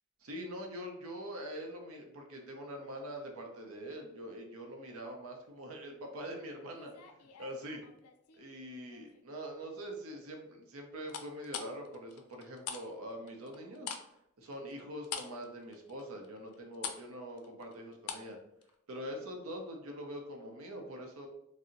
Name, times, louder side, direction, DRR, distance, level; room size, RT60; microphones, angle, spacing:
voice 1, 0.2-7.8 8.4-13.9 14.4-18.4 18.9-21.3, equal, 70° right, 3 dB, 0.6 m, -44 dB
sound 1, 6.7-8.4 8.9-9.3 11.1-12.8 13.1-18.4 18.6-18.7, left 7 dB, 90° left, 0.4 m, -44 dB
2.7 x 2.0 x 3.7 m, 0.79 s
head